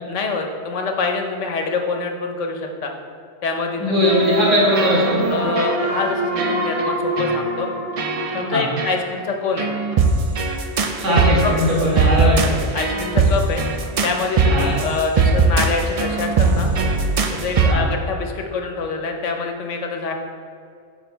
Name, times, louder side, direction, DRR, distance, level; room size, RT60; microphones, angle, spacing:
voice 1, 0.0-2.9 3.4-4.2 5.3-7.7 8.3-9.7 11.1-11.5 12.7-13.6 14.0-16.7 17.3-20.1, left 4 dB, 80° left, 3 dB, 1.2 m, -25 dB
voice 2, 3.8-5.2 8.5-8.6 11.0-12.6 14.5-14.7 17.7-17.8, equal, 85° right, -5 dB, 2.1 m, -19 dB
sound 1, 4.0-9.0, right 1 dB, 35° right, 0.9 m, -25 dB
sound 2, 4.1-4.4 4.7-5.3 5.6-6.0 6.4-6.9 7.2-7.4 8.0-8.5 8.8-9.0 9.6-17.7, right 4 dB, 60° right, 0.3 m, -20 dB
7.1 x 4.4 x 4.5 m, 2.3 s
omnidirectional pair, 1.2 m